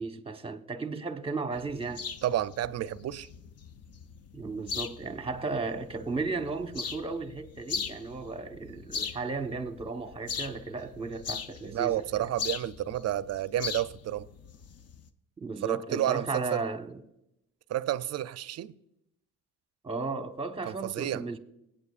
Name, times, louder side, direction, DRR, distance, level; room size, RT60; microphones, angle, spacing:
voice 1, 0.0-2.0 4.3-12.3 15.4-17.0 19.8-21.4, right 3 dB, 20° right, 1.0 m, -35 dB
sound 1, 1.5-15.1, left 6 dB, 55° left, 0.7 m, -40 dB
voice 2, 2.2-3.3 11.6-14.3 15.6-16.6 17.7-18.7 20.6-21.2, right 12 dB, 55° right, 0.5 m, -30 dB
20.0 x 9.0 x 2.4 m
cardioid pair, 90°, 30 cm